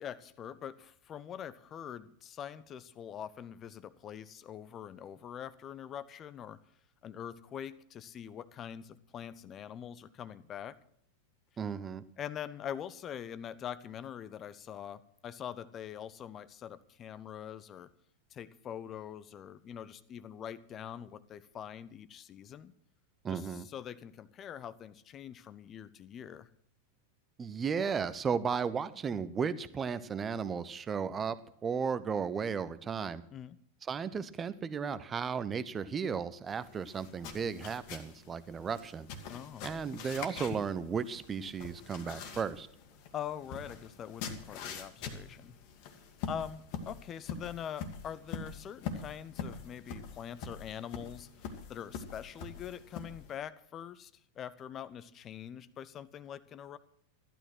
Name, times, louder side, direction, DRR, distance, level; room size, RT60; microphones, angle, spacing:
voice 1, 0.0-6.6 7.0-10.8 12.2-17.9 18.3-22.7 23.3-26.5 33.3-33.6 39.3-39.7 43.1-45.6 46.3-54.1 54.4-56.8, left 9 dB, 30° left, 16 dB, 0.8 m, -44 dB
voice 2, 11.6-12.0 23.2-23.7 27.4-31.4 31.6-33.2 33.8-39.1 39.6-42.7, right 6 dB, 20° right, 15 dB, 0.9 m, -34 dB
sound 1, 36.5-53.4, left 6 dB, 45° left, 1.9 m, -44 dB
14.5 x 12.0 x 6.2 m, 0.66 s
figure-of-eight pair, 90°, 0 cm